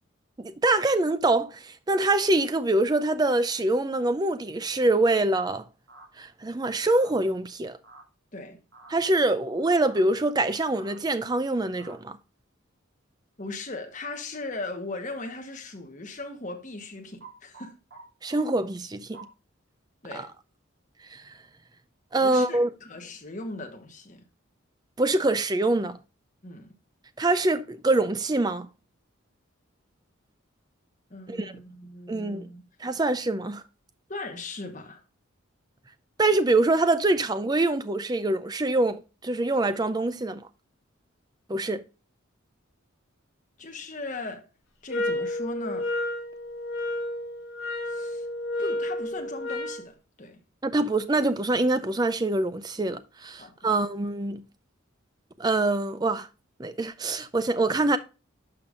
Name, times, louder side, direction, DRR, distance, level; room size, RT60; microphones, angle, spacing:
voice 1, 0.4-5.6 6.2-7.8 8.9-12.2 18.2-19.3 20.1-20.3 21.1-21.3 22.1-22.7 25.0-26.0 27.2-28.7 31.3-31.5 32.1-32.4 32.8-33.6 36.2-40.4 41.5-41.8 50.6-54.4 55.4-56.3 56.6-58.0, right 2 dB, 20° right, 0.4 m, -25 dB
sound 1, 5.9-6.1 6.9-7.1 7.8-8.0 8.7-8.9 9.8-10.0 10.7-11.0 11.8-12.0 17.2-18.0 18.3-18.4 19.1-19.3 20.1-20.2, right 3 dB, 60° right, 2.8 m, -48 dB
voice 2, 13.4-17.7 20.0-20.3 22.2-24.3 26.4-26.7 31.1-32.6 34.1-35.0 43.6-44.4 44.8-45.9 47.8-48.3 48.6-50.4 53.4-53.7, left 2 dB, 35° left, 1.2 m, -38 dB
sound 2, 44.9-49.8, left 1 dB, 75° left, 3.4 m, -31 dB
11.5 x 5.2 x 2.5 m
head